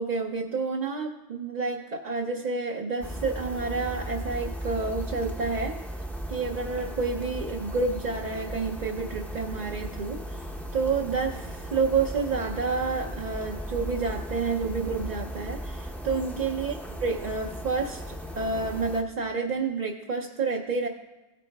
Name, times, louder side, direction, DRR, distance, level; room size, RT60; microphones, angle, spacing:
voice 1, 0.0-5.8 6.3-16.7 17.0-20.9, right 4 dB, 45° right, 1 dB, 0.6 m, -29 dB
sound 1, 3.0-19.0, equal, ahead, 0.6 m, -37 dB
16.5 x 9.1 x 2.3 m, 1.1 s
omnidirectional pair, 1.1 m